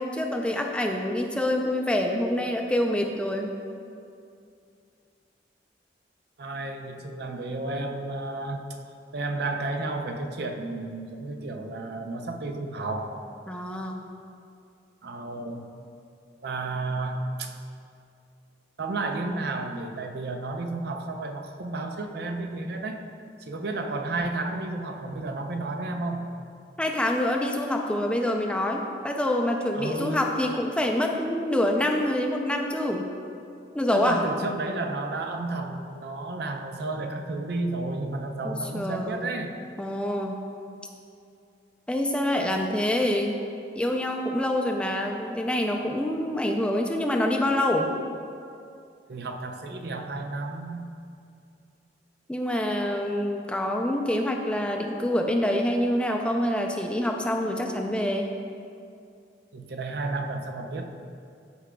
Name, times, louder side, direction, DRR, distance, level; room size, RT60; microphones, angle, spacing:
voice 1, 0.0-3.5 13.5-14.0 26.8-33.1 33.7-34.3 38.4-39.3 39.8-40.4 41.9-43.4 43.8-47.9 52.3-58.3, left 1 dB, 5° left, 1 dB, 0.4 m, -26 dB
voice 2, 6.4-8.7 9.1-13.1 15.0-15.7 16.4-17.5 18.8-23.0 23.5-26.3 29.7-30.2 33.9-39.5 49.1-50.9 59.5-60.9, right 2 dB, 65° right, 4 dB, 0.5 m, -32 dB
13.5 x 4.9 x 2.3 m, 2.5 s
head